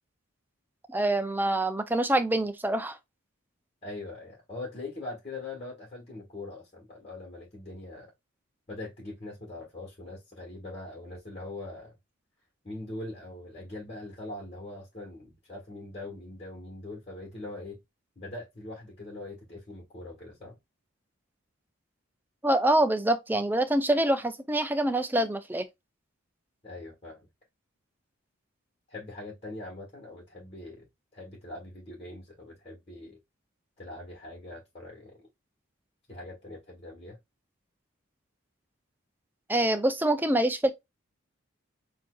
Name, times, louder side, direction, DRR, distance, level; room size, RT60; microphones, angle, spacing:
voice 1, 0.9-3.0 22.4-25.6 39.5-40.7, right 1 dB, 10° right, 0.5 m, -25 dB
voice 2, 3.8-8.1 8.7-11.9 12.6-17.8 18.1-20.5 26.6-27.3 28.9-30.9 31.1-33.2 33.8-35.2 36.1-37.2, left 2 dB, 30° left, 1.6 m, -42 dB
7.2 x 2.7 x 2.3 m
head